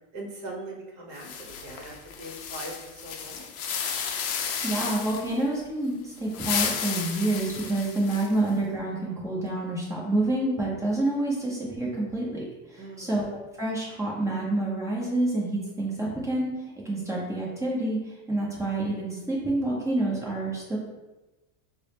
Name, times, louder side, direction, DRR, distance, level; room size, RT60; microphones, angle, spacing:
voice 1, 0.1-3.5 8.3-8.4 12.8-13.1, right 2 dB, 40° right, -1 dB, 0.9 m, -41 dB
Rustling leaves, 1.1-5.4 6.2-8.5, left 7 dB, 50° left, 0.5 m, -33 dB
voice 2, 4.6-13.2 13.6-16.5 16.8-20.8, right 2 dB, 5° right, -5 dB, 0.6 m, -28 dB
3.3 x 2.0 x 4.1 m, 1.1 s
supercardioid pair, 150°, 42 cm